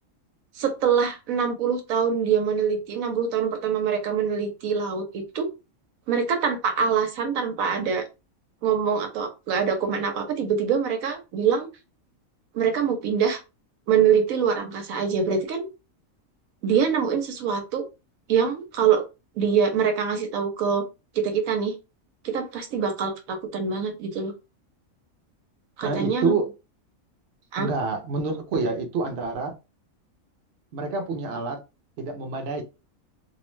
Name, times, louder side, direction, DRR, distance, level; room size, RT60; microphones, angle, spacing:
voice 1, 0.6-5.5 6.1-8.0 8.6-11.7 12.5-13.4 13.9-15.7 16.6-17.8 18.3-19.0 19.4-20.8 21.1-21.7 22.2-24.3 25.8-26.4 27.5-27.7, right 7 dB, 80° right, 1.0 m, -24 dB
voice 2, 25.8-26.5 27.6-29.5 30.7-31.6 32.0-32.6, right 4 dB, 60° right, 0.8 m, -27 dB
2.6 x 2.1 x 3.0 m
omnidirectional pair, 1.5 m